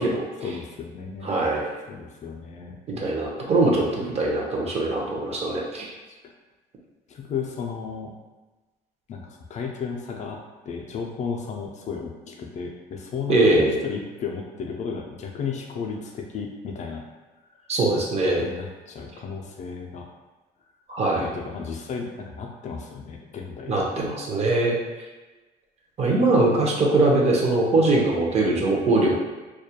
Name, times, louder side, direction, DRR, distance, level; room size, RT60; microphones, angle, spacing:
voice 1, 0.4-1.4 1.9-3.1 6.1-6.2 7.1-8.1 9.1-10.4 10.7-17.0 17.6-17.7 18.4-20.1 21.1-24.0, left 5 dB, 45° left, 1 dB, 0.4 m, -34 dB
voice 2, 1.2-1.7 3.0-5.9 13.3-13.7 17.7-18.4 20.9-21.3 23.7-24.8 26.0-29.1, right 2 dB, 40° right, -2 dB, 0.6 m, -21 dB
2.3 x 2.1 x 2.8 m, 1.2 s
cardioid pair, 110°, 17 cm